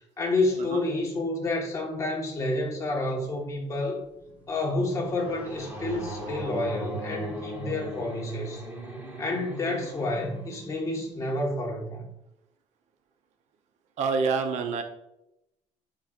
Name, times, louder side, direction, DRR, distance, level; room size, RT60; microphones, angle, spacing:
voice 1, 0.2-4.0 4.5-8.6 9.2-12.1, left 2 dB, 25° left, -1 dB, 1.5 m, -29 dB
sound 1, 4.1-11.4, right 1 dB, 15° right, 1.5 m, -39 dB
voice 2, 14.0-14.8, right 4 dB, 65° right, 6 dB, 0.7 m, -26 dB
9.2 x 4.2 x 2.5 m, 0.84 s
cardioid pair, 160°, 12 cm